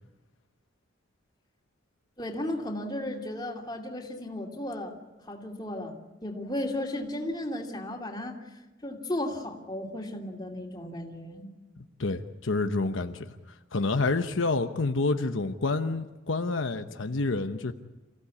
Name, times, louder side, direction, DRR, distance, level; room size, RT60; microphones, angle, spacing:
voice 1, 2.2-4.9 5.2-8.4 8.8-11.5, left 1 dB, 20° left, 0 dB, 2.9 m, -35 dB
voice 2, 12.0-13.3 13.7-17.7, left 3 dB, 80° left, 7 dB, 1.0 m, -28 dB
28.0 x 16.0 x 8.5 m, 1.1 s
head